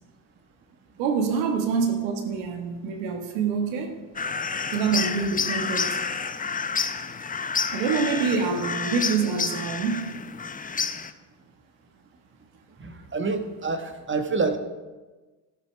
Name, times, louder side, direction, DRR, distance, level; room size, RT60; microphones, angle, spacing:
voice 1, 1.0-3.9 4.7-5.9 7.7-10.2, right 5 dB, 80° right, 1.7 m, -26 dB
sound 1, 4.2-11.1, left 5 dB, 15° left, 0.7 m, -29 dB
voice 2, 12.8-14.6, right 4 dB, 25° right, 1.4 m, -27 dB
12.5 x 12.0 x 3.4 m
supercardioid pair, 75°, 50 cm